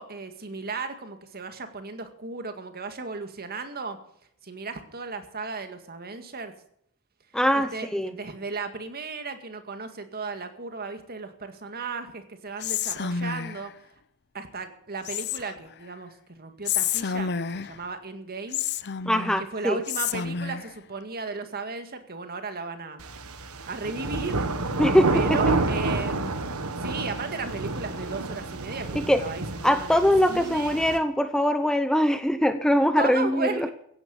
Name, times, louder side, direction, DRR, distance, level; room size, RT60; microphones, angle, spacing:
voice 1, 0.0-4.0 4.4-6.5 7.5-13.7 14.3-18.6 19.5-23.0 23.7-24.5 25.1-26.3 26.8-30.8 33.0-33.7, right 4 dB, 45° right, 8 dB, 2.0 m, -35 dB
voice 2, 7.3-8.1 19.0-19.8 24.8-25.4 29.1-29.2 29.6-33.7, equal, 5° left, 10 dB, 0.8 m, -22 dB
Whispering, 12.6-13.7 15.0-15.7 16.6-17.8 18.5-19.4 19.9-20.7, left 7 dB, 50° left, 0.7 m, -29 dB
sound 1, 23.0-31.0, right 2 dB, 80° right, 1.5 m, -29 dB
16.0 x 10.0 x 7.1 m, 0.69 s
head